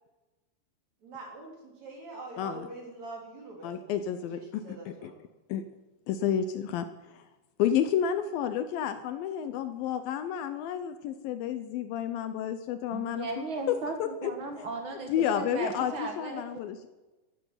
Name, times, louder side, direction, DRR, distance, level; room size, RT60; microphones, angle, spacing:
voice 1, 1.0-5.1, right 2 dB, 45° right, -1 dB, 4.6 m, -44 dB
voice 2, 2.4-2.7 3.6-4.6 5.0-5.1 5.5-5.6 6.1-7.2 7.6-14.3 15.1-16.9, left 9 dB, 75° left, 10 dB, 2.3 m, -31 dB
voice 3, 12.9-16.4, right 3 dB, 85° right, 3 dB, 1.1 m, -36 dB
13.5 x 10.5 x 8.0 m, 1.1 s
omnidirectional pair, 4.6 m